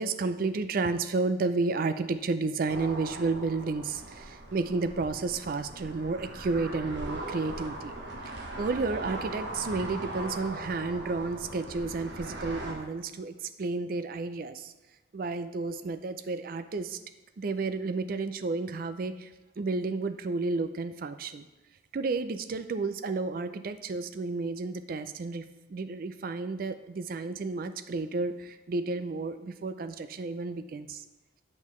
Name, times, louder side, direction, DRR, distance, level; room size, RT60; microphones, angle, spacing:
voice 1, 0.0-7.9 8.3-14.7 15.1-17.0 17.4-21.5 21.9-31.0, right 3 dB, 50° right, 10 dB, 0.4 m, -32 dB
sound 1, 2.7-12.7, right 2 dB, 65° right, 1.1 m, -39 dB
8.5 x 5.4 x 3.1 m, 1.1 s
head